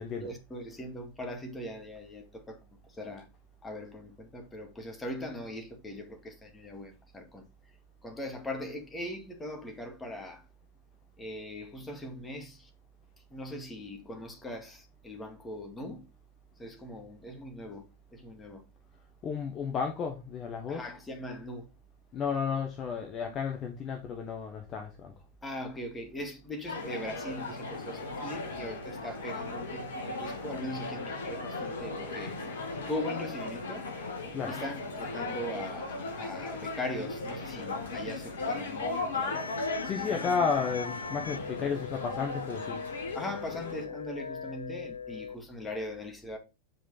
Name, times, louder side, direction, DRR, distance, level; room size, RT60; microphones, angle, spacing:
voice 1, 0.2-2.6 2.9-3.3 3.6-7.5 8.0-10.4 11.2-12.7 13.3-16.0 16.6-17.8 18.1-18.6 20.7-21.7 25.4-32.4 32.9-33.9 34.4-39.5 40.1-40.4 41.5-41.8 43.1-46.4, left 1 dB, 10° left, 2.1 m, -40 dB
voice 2, 19.2-20.8 22.1-25.1 34.3-34.5 39.8-42.8, left 6 dB, 30° left, 1.3 m, -32 dB
sound 1, 26.7-43.8, left 3 dB, 65° left, 2.8 m, -37 dB
sound 2, 39.3-45.3, left 5 dB, 80° left, 0.4 m, -41 dB
7.7 x 5.1 x 4.1 m
figure-of-eight pair, 90°, 0 cm